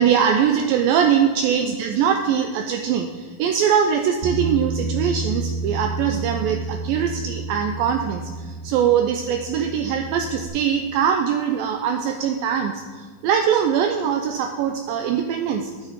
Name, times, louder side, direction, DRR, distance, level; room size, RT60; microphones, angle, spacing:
voice 1, 0.0-15.7, right 8 dB, 85° right, 4 dB, 2.0 m, -22 dB
Bass guitar, 4.2-10.5, right 3 dB, 70° right, 2.4 m, -30 dB
14.5 x 6.9 x 4.6 m, 1.5 s
omnidirectional pair, 4.6 m